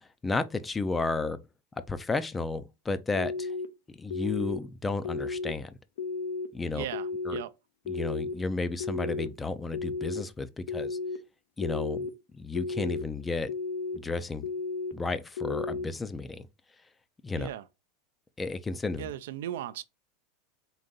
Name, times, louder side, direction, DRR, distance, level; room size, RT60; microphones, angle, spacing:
voice 1, 0.0-1.4 1.9-3.5 3.9-5.8 6.5-6.9 7.2-7.4 7.9-11.0 11.6-13.5 13.9-14.5 14.9-16.5 17.2-17.5 18.4-19.1, left 3 dB, 15° left, 0.4 m, -32 dB
sound 1, 3.2-3.7 4.1-4.6 5.0-5.5 6.0-6.5 6.9-7.4 7.9-8.3 8.8-9.3 9.7-10.2 10.7-11.2 11.6-12.1 12.6-13.0 13.5-14.0 14.4-14.9 15.4-15.9, left 4 dB, 85° left, 0.5 m, -33 dB
voice 2, 6.7-7.5 17.4-17.6 19.0-19.8, right 12 dB, 80° right, 0.4 m, -37 dB
3.9 x 2.5 x 3.8 m
supercardioid pair, 130°, 0 cm